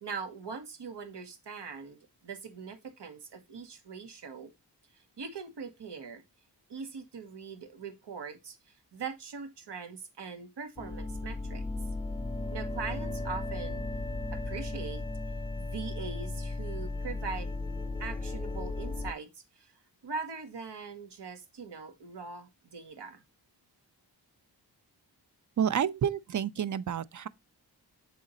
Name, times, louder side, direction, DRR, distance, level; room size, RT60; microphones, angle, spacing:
voice 1, 0.0-4.5 4.9-6.2 6.7-11.6 12.5-13.8 14.3-15.0 15.6-17.5 18.0-19.7 20.0-23.2, right 5 dB, 80° right, 1.1 m, -41 dB
sound 1, 10.8-19.1, left 2 dB, 15° left, 0.3 m, -35 dB
voice 2, 25.6-27.3, right 8 dB, 45° right, 0.5 m, -29 dB
7.5 x 3.8 x 4.0 m
wide cardioid pair, 75°, 41 cm